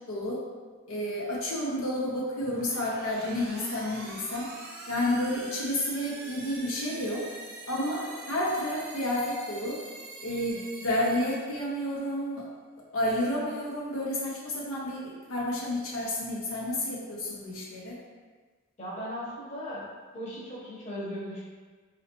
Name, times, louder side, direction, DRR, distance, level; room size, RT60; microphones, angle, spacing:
voice 1, 0.1-0.4 0.9-4.5 4.9-7.2 7.7-9.8 10.2-12.4 12.9-18.0, left 1 dB, 75° left, -4 dB, 0.6 m, -30 dB
sound 1, 2.4-12.1, right 2 dB, 45° right, 0.6 m, -44 dB
voice 2, 18.8-19.8 20.1-21.4, equal, 30° left, -7 dB, 0.9 m, -37 dB
4.1 x 2.7 x 2.8 m, 1.4 s
head